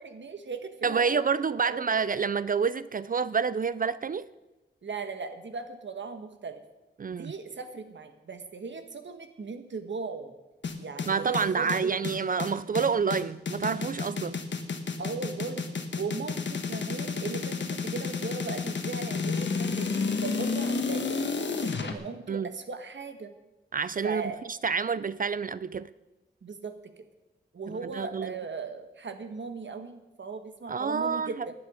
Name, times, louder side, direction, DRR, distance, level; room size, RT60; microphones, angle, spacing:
voice 1, 0.0-1.2 1.6-1.9 4.8-6.6 7.1-10.3 10.8-11.9 15.0-19.9 20.2-21.2 21.5-23.3 24.0-24.4 26.4-27.0 27.5-31.5, right 4 dB, 75° right, 1.3 m, -38 dB
voice 2, 0.8-4.3 7.0-7.3 11.1-14.4 22.3-22.5 23.7-24.2 24.6-25.9 27.7-28.3 30.7-31.5, right 5 dB, 50° right, 0.4 m, -28 dB
sound 1, 10.6-21.9, left 4 dB, 75° left, 1.3 m, -31 dB
17.0 x 10.5 x 5.0 m
wide cardioid pair, 110°, 19 cm